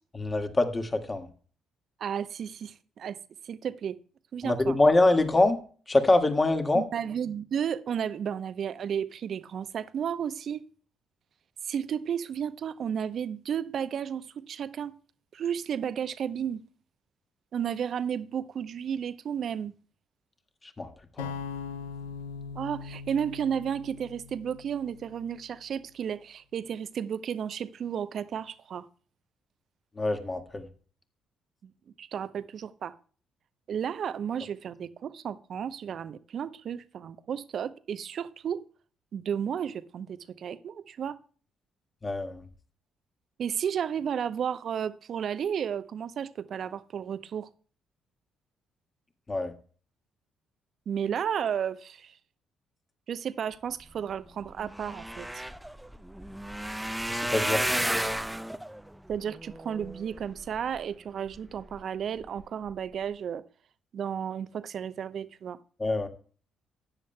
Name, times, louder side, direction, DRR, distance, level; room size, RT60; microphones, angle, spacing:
voice 1, 0.1-1.3 4.4-5.6 5.9-6.9 20.8-20.9 21.2-21.3 30.0-30.7 42.0-42.4 49.3-49.5 57.1-57.6 65.8-66.1, left 2 dB, 25° left, 1.8 m, -24 dB
voice 2, 2.0-3.2 3.4-4.0 4.3-4.8 6.7-10.7 11.6-15.0 15.3-16.6 17.5-19.7 22.6-28.9 32.0-32.9 33.7-38.7 39.1-41.2 43.4-47.5 50.9-52.2 53.1-55.4 59.1-63.4 63.9-65.6, right 8 dB, 55° right, 0.7 m, -33 dB
sound 1, 21.2-25.3, left 5 dB, 80° left, 0.7 m, -40 dB
sound 2, 54.1-54.2 54.4-60.8 61.3-61.8 62.2-62.4 62.7-62.8, right 1 dB, 5° right, 0.7 m, -33 dB
14.0 x 10.0 x 2.2 m
hypercardioid pair, 45°, 0 cm